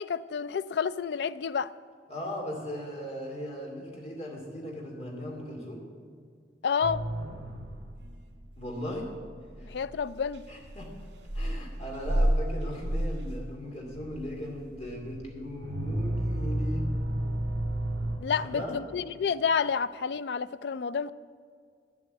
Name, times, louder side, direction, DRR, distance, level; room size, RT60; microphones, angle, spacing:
voice 1, 0.0-1.7 6.6-7.0 9.6-10.4 18.2-21.1, left 6 dB, 70° left, 15 dB, 0.4 m, -29 dB
voice 2, 2.1-5.8 8.6-9.1 9.6-9.7 10.5-10.9 11.3-16.9 18.3-18.8, equal, 35° left, -1 dB, 2.4 m, -38 dB
sound 1, 6.8-18.2, right 1 dB, 90° right, 2.0 m, -32 dB
10.5 x 7.9 x 7.9 m, 2.1 s
head